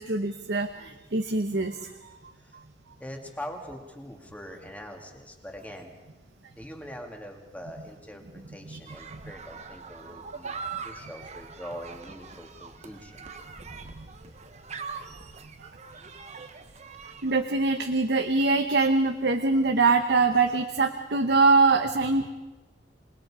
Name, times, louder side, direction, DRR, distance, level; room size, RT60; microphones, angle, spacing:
voice 1, 0.0-2.2 2.5-2.6 8.7-8.8 9.1-9.2 10.4-10.8 13.8-14.1 15.6-16.5 17.2-22.3, right 3 dB, 65° right, 6 dB, 1.0 m, -24 dB
voice 2, 3.0-5.9 6.5-10.6 10.8-13.3, equal, 10° left, 2 dB, 2.3 m, -43 dB
sound 1, 8.9-17.4, right 5 dB, 40° right, 1.2 m, -42 dB
27.5 x 20.0 x 4.9 m, 1.1 s
head